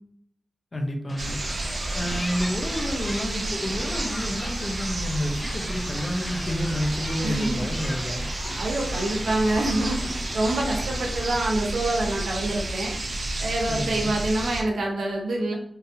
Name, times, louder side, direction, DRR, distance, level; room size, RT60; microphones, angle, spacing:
voice 1, 0.7-1.3 1.9-8.2 13.7-14.1, equal, 50° left, 3 dB, 0.8 m, -30 dB
sound 1, 1.1-11.4, left 1 dB, 30° left, 0.4 m, -38 dB
sound 2, 1.2-14.6, right 2 dB, 60° right, 0.7 m, -31 dB
voice 2, 7.2-7.7 8.6-15.5, right 1 dB, 85° right, -1 dB, 0.8 m, -26 dB
3.9 x 2.7 x 2.7 m, 0.69 s
cardioid pair, 55°, 0 cm